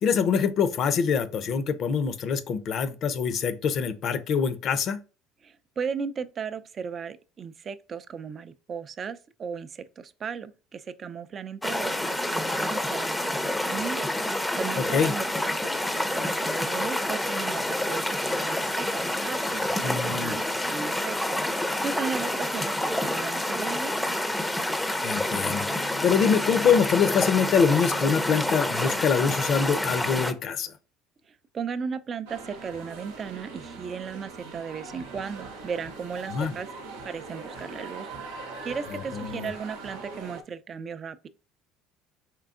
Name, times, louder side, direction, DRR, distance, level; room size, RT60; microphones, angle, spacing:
voice 1, 0.0-5.0 14.8-15.1 19.8-20.4 25.0-25.7 26.0-30.7 36.3-36.5 39.1-39.5, left 6 dB, 50° left, 0.5 m, -24 dB
voice 2, 5.4-21.4 21.8-24.0 31.3-36.7 37.0-38.1 38.6-41.3, right 6 dB, 40° right, 0.4 m, -36 dB
sound 1, 11.6-30.3, left 1 dB, 5° left, 0.5 m, -28 dB
Bowed string instrument, 25.2-29.4, left 6 dB, 85° left, 1.0 m, -42 dB
sound 2, 32.3-40.4, right 3 dB, 85° right, 0.8 m, -41 dB
4.5 x 3.3 x 2.5 m
hypercardioid pair, 80°, 0 cm